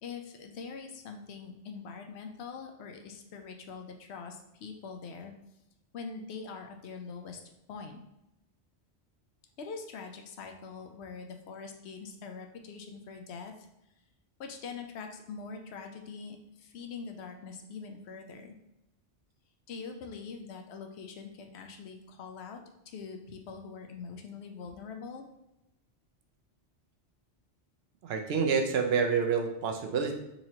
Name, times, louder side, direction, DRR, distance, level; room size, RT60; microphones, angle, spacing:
voice 1, 0.0-5.3 5.9-7.4 7.7-8.0 9.6-13.7 14.4-18.6 19.7-25.2, left 5 dB, 75° left, 4 dB, 0.8 m, -43 dB
voice 2, 28.0-30.2, right 6 dB, 70° right, 4 dB, 0.8 m, -28 dB
4.1 x 2.9 x 2.8 m, 0.88 s
omnidirectional pair, 1.1 m